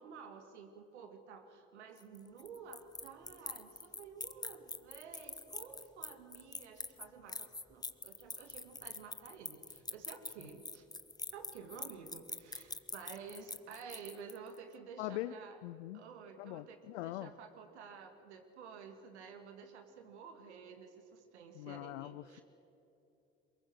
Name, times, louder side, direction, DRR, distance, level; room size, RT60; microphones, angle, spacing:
voice 1, 0.0-10.9 11.3-15.6 15.9-22.4, right 6 dB, 85° right, 7 dB, 1.8 m, -52 dB
sound 1, 2.0-14.6, left 3 dB, 10° left, 0.8 m, -45 dB
voice 2, 15.0-15.3 15.6-16.0 16.4-17.3 21.5-22.4, left 16 dB, 80° left, 14 dB, 0.6 m, -42 dB
23.0 x 21.0 x 6.2 m, 2.8 s
hypercardioid pair, 55°, 33 cm